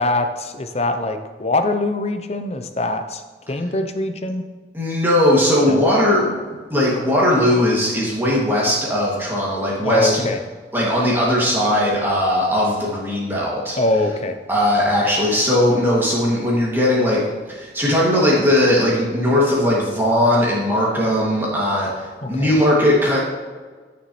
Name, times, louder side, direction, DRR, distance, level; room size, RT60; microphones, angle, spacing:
voice 1, 0.0-3.2 3.5-4.4 5.7-5.9 9.8-10.4 13.8-14.4 22.2-22.6, left 2 dB, 35° left, 7 dB, 0.7 m, -23 dB
voice 2, 4.7-6.4 6.7-10.3 10.7-13.8 14.5-17.2 17.5-23.2, left 1 dB, 15° right, -6 dB, 2.4 m, -18 dB
12.5 x 7.0 x 3.2 m, 1.4 s
head